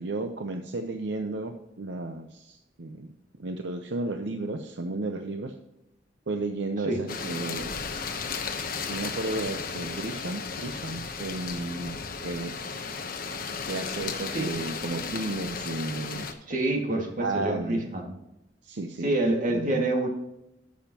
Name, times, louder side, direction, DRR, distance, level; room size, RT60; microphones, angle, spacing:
voice 1, 0.0-3.1 3.4-5.5 6.3-7.8 8.8-12.0 12.2-12.5 13.7-16.3 17.2-17.9 18.6-19.1 19.5-19.9, right 2 dB, 70° right, 5 dB, 0.7 m, -33 dB
sound 1, 7.1-16.3, left 5 dB, 50° left, 0.9 m, -35 dB
voice 2, 16.5-18.1 19.0-20.1, right 2 dB, 45° right, 1 dB, 2.0 m, -27 dB
11.5 x 7.3 x 2.9 m, 0.90 s
head